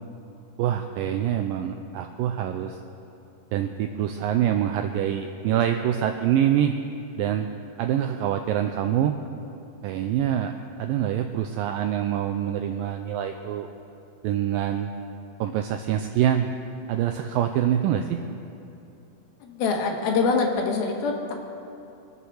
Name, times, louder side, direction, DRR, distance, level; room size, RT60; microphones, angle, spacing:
voice 1, 0.6-2.8 3.5-6.8 7.2-7.5 7.8-9.2 9.8-10.5 10.8-13.7 14.2-14.9 15.4-16.5 16.9-18.2, right 10 dB, 90° right, 6 dB, 2.0 m, -25 dB
voice 2, 19.4-21.3, left 4 dB, 70° left, 2 dB, 3.1 m, -24 dB
23.0 x 8.3 x 6.3 m, 2.8 s
omnidirectional pair, 4.6 m